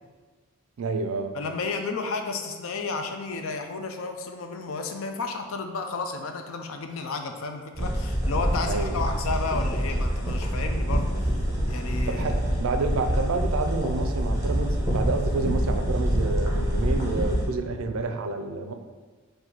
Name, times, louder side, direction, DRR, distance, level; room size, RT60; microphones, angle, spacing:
voice 1, 0.8-1.3 8.6-9.1 12.1-18.7, right 3 dB, 70° right, 6 dB, 0.4 m, -29 dB
voice 2, 1.3-11.3 11.7-12.4, left 4 dB, 70° left, 5 dB, 0.4 m, -32 dB
sound 1, 7.7-17.4, equal, 15° right, 1.0 m, -26 dB
sound 2, 8.4-18.0, equal, 45° left, 0.8 m, -41 dB
3.9 x 2.6 x 4.4 m, 1.4 s
head